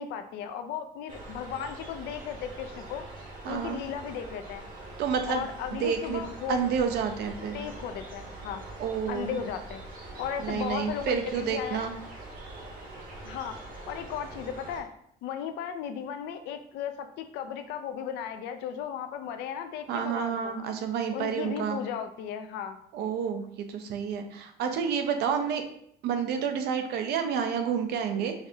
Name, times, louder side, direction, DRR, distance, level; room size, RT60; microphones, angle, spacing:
voice 1, 0.0-3.1 3.5-4.6 5.3-6.6 7.5-8.6 9.1-9.8 10.2-11.9 13.2-14.9 15.2-20.5 21.1-22.8, left 8 dB, 85° left, 8 dB, 0.4 m, -36 dB
birds and river, 1.1-14.8, right 2 dB, 55° right, 1.1 m, -43 dB
voice 2, 3.4-3.8 5.0-5.4 5.8-6.2 6.5-7.6 8.8-9.4 10.4-11.9 19.9-21.8 22.9-25.6 26.0-28.3, right 7 dB, 75° right, 6 dB, 0.6 m, -29 dB
4.6 x 2.3 x 2.7 m, 0.70 s
cardioid pair, 110°, 17 cm